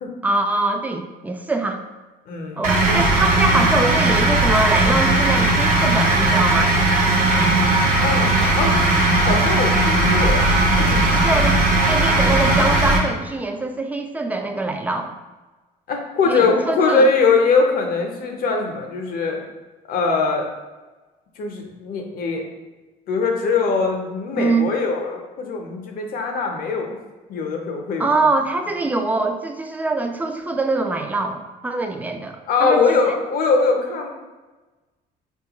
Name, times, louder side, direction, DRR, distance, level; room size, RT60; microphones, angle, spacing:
voice 1, 0.2-1.8 2.6-6.7 11.1-11.6 11.9-15.1 16.2-17.1 24.3-24.7 28.0-32.8, right 2 dB, 10° right, 5 dB, 0.3 m, -23 dB
voice 2, 2.3-3.2 8.0-8.8 9.2-10.5 10.8-11.0 11.3-11.4 15.9-19.4 19.9-20.5 21.4-22.4 23.1-26.9 27.3-28.1 32.5-34.1, left 4 dB, 60° left, 2 dB, 0.6 m, -21 dB
sound 1, 2.6-13.0, right 2 dB, 50° right, 0.7 m, -17 dB
4.2 x 2.3 x 2.9 m, 1.2 s
cardioid pair, 110°, 17 cm